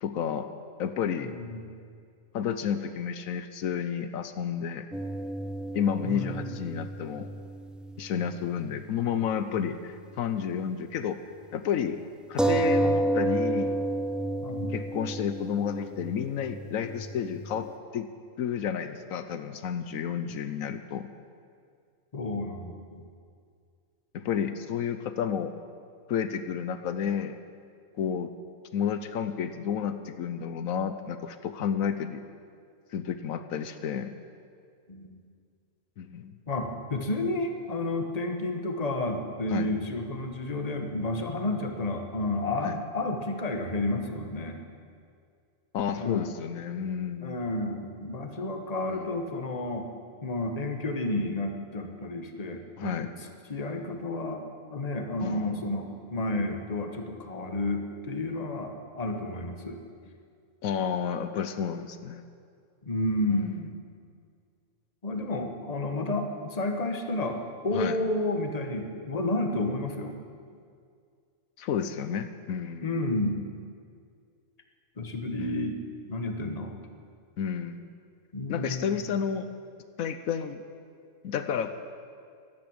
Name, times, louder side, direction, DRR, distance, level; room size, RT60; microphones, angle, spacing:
voice 1, 0.0-0.5 0.8-1.3 2.3-4.9 5.7-7.3 8.0-11.2 11.5-12.0 12.3-13.8 14.7-17.7 17.9-18.1 18.4-21.1 24.1-25.6 26.1-27.4 28.0-28.3 28.7-32.3 32.9-34.1 36.0-36.3 39.5-39.7 42.6-42.8 45.7-47.4 48.9-49.1 52.8-53.1 55.2-55.6 60.6-62.2 63.3-63.5 67.7-68.0 71.6-73.1 75.4-75.6 77.4-77.9 78.5-79.5 80.0-80.6 81.2-81.7, left 8 dB, 80° left, 10 dB, 1.1 m, -31 dB
voice 2, 1.2-1.7 6.0-6.6 14.4-14.7 22.1-23.0 24.2-24.3 34.9-35.2 36.5-44.6 45.9-46.3 47.2-49.9 50.2-53.1 53.5-54.4 54.7-59.8 62.8-63.7 65.0-70.1 72.8-73.4 75.0-75.8 76.1-76.8 78.3-79.0, left 2 dB, 30° left, 5 dB, 1.2 m, -31 dB
knock pot cover heavy, 4.9-8.8 9.0-9.2 12.4-17.6, right 1 dB, ahead, 0.5 m, -30 dB
12.0 x 12.0 x 8.7 m, 2.2 s
omnidirectional pair, 1.4 m